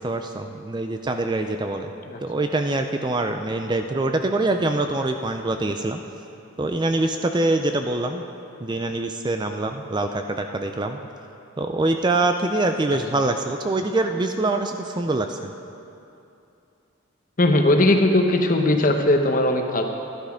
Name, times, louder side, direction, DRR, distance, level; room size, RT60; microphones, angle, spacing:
voice 1, 0.0-1.9 2.2-6.0 6.6-8.2 8.6-11.0 11.6-15.5, right 2 dB, 20° right, 6 dB, 0.4 m, -24 dB
voice 2, 17.4-19.8, left 1 dB, 40° left, 4 dB, 0.9 m, -19 dB
12.5 x 11.5 x 5.0 m, 2.7 s
head